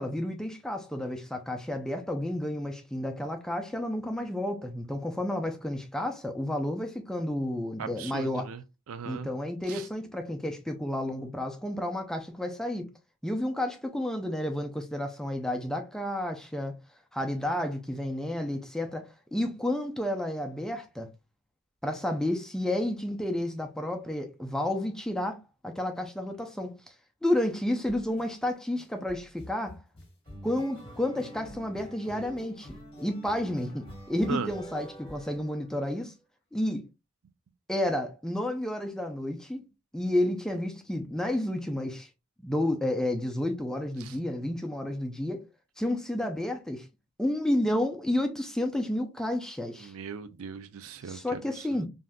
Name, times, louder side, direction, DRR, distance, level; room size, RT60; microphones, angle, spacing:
voice 1, 0.0-8.5 9.0-12.9 13.2-16.8 17.1-21.1 21.8-26.9 27.2-29.8 30.4-36.1 36.5-36.9 37.7-39.7 39.9-42.1 42.4-45.5 45.8-46.9 47.2-49.9 51.1-51.9, left 1 dB, 5° left, 0.4 m, -31 dB
voice 2, 7.8-9.3 9.7-9.9 34.3-34.5 44.0-44.2 49.8-51.8, right 6 dB, 75° right, 0.4 m, -39 dB
sound 1, 27.9-28.2 28.8-35.9, equal, 25° left, 1.1 m, -47 dB
3.4 x 2.6 x 2.2 m
head